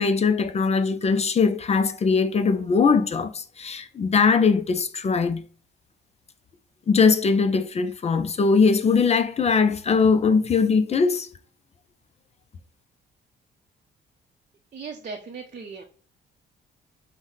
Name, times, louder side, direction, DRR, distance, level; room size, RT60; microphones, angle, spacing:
voice 1, 0.0-5.4 6.9-11.3, left 5 dB, 35° left, 0.4 m, -21 dB
voice 2, 14.7-15.8, right 4 dB, 40° right, 0.6 m, -37 dB
5.4 x 2.1 x 3.1 m
cardioid pair, 90°, 20 cm